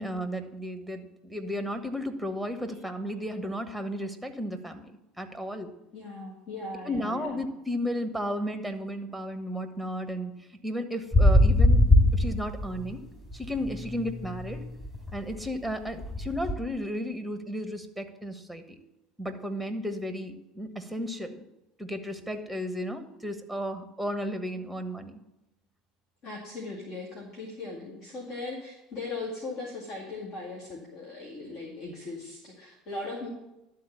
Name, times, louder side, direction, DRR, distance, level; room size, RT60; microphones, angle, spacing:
voice 1, 0.0-4.9 5.2-5.7 6.8-10.3 10.6-11.8 12.1-13.1 13.3-14.6 15.1-18.8 19.2-21.4 21.8-25.2, equal, ahead, 8 dB, 1.1 m, -34 dB
voice 2, 5.9-7.4 26.2-33.3, left 3 dB, 55° left, -5 dB, 2.3 m, -39 dB
sound 1, 11.1-13.0 13.3-16.5, left 1 dB, 20° left, 2.8 m, -23 dB
11.5 x 4.0 x 7.2 m, 0.93 s
figure-of-eight pair, 70°, 0 cm